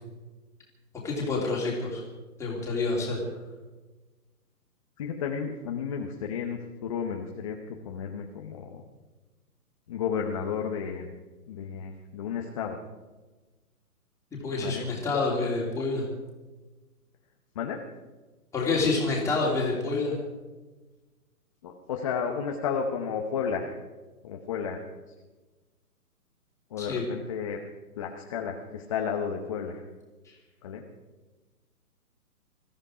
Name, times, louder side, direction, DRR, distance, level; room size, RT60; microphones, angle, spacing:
voice 1, 1.0-2.0 2.4-3.2 14.3-16.1 18.5-20.2 26.8-27.0, left 3 dB, 5° left, -3 dB, 2.8 m, -28 dB
voice 2, 5.0-8.8 9.9-11.1 11.5-12.8 14.6-14.9 17.5-17.8 21.6-23.8 24.2-24.8 26.7-27.6 28.0-29.9 30.6-30.8, left 6 dB, 20° left, 2 dB, 0.9 m, -32 dB
21.5 x 13.5 x 4.9 m, 1.2 s
hypercardioid pair, 160°, 46 cm